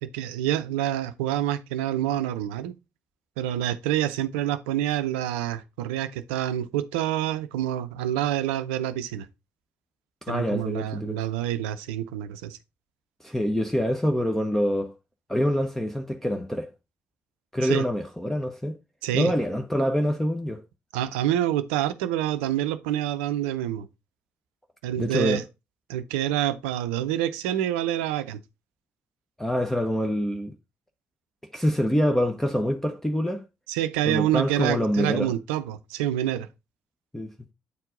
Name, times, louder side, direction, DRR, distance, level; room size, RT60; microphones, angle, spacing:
voice 1, 0.0-2.8 3.4-9.3 10.3-12.6 17.6-17.8 19.0-19.3 20.9-23.9 24.8-25.4 25.9-28.4 33.7-36.5, right 12 dB, 75° right, 0.6 m, -27 dB
voice 2, 10.2-11.2 13.2-14.9 15.3-16.7 17.5-18.8 19.1-20.6 25.0-25.4 29.4-30.5 31.5-33.4 34.0-35.3 37.1-37.3, equal, 5° left, 0.9 m, -25 dB
8.4 x 4.5 x 3.7 m
figure-of-eight pair, 45°, 6 cm